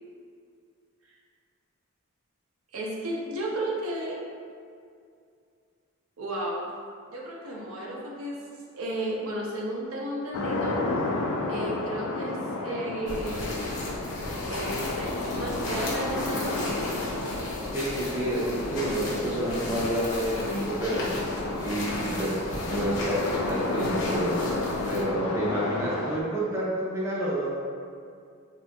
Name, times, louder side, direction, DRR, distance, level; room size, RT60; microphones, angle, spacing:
voice 1, 2.7-4.2 6.2-6.7 7.1-8.4 8.7-10.8 11.5-13.6 14.5-16.7, right 1 dB, 75° right, -3 dB, 0.6 m, -33 dB
sound 1, 10.3-26.2, left 2 dB, 75° left, 0.3 m, -31 dB
sound 2, 13.1-25.0, left 1 dB, 60° left, 0.8 m, -37 dB
voice 2, 17.7-21.1 21.6-24.6 24.9-27.6, right 1 dB, 10° right, -7 dB, 0.4 m, -29 dB
3.5 x 2.8 x 2.2 m, 2.3 s
head